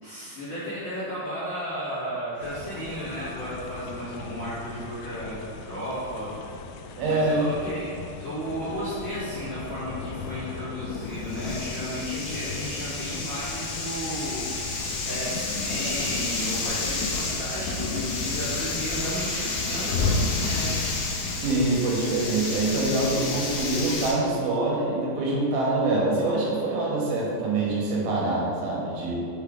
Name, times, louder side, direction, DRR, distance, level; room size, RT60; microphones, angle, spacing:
voice 1, 0.0-6.4 7.0-20.9, equal, 55° left, -13 dB, 1.8 m, -34 dB
sound 1, 2.4-21.7, left 4 dB, 90° left, 2.4 m, -35 dB
voice 2, 7.0-7.4 21.4-29.1, right 2 dB, 90° right, -4 dB, 3.7 m, -25 dB
sound 2, 10.9-24.1, left 3 dB, 75° left, 2.3 m, -31 dB
7.3 x 4.4 x 3.7 m, 2.4 s
omnidirectional pair, 5.3 m